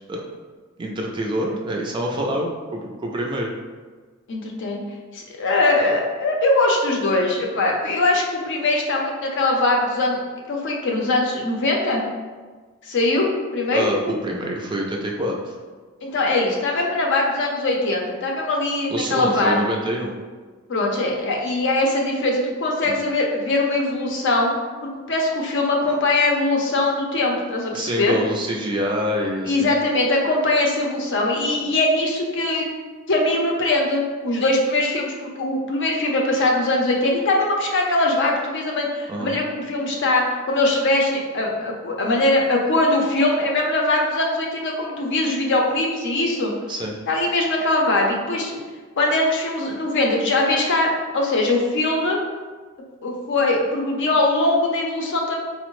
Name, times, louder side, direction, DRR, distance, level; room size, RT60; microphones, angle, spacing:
voice 1, 0.8-3.5 13.7-15.4 18.9-20.1 22.8-23.0 27.7-29.7 39.1-39.4 46.7-46.9, equal, 20° right, 0 dB, 0.4 m, -26 dB
voice 2, 4.3-4.8 5.1-10.2 10.5-12.0 12.9-13.9 16.0-19.6 20.7-24.6 24.8-28.2 29.4-32.7 33.1-46.5 47.1-48.6 49.0-52.2 53.0-55.4, left 2 dB, 60° left, 0 dB, 0.6 m, -21 dB
4.3 x 2.1 x 3.0 m, 1.4 s
head